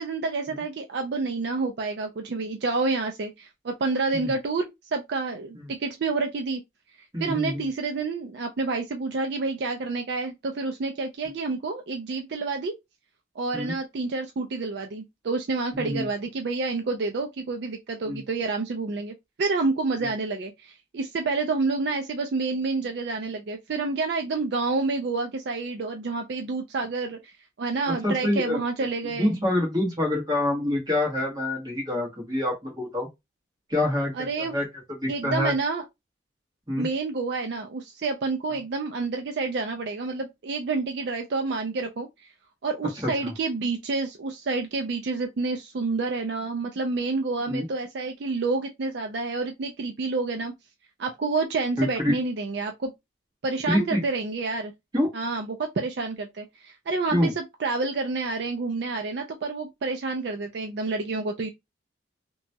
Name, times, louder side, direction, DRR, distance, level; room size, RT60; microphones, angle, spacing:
voice 1, 0.0-6.6 7.2-12.7 13.4-27.3 27.6-29.3 34.1-34.6 35.1-35.8 36.8-42.1 42.6-50.5 51.0-52.9 53.4-54.7 55.1-61.5, right 3 dB, 55° right, 0.4 m, -29 dB
voice 2, 7.1-7.7 13.5-13.7 15.7-16.1 18.0-18.2 20.0-20.1 27.9-28.6 29.0-33.1 33.7-34.7 35.0-35.5 36.7-36.9 43.2-43.3 47.5-47.7 51.8-52.1 53.7-54.0 54.9-55.1 57.1-57.3, left 1 dB, 20° right, 1.2 m, -26 dB
2.8 x 2.2 x 2.7 m
head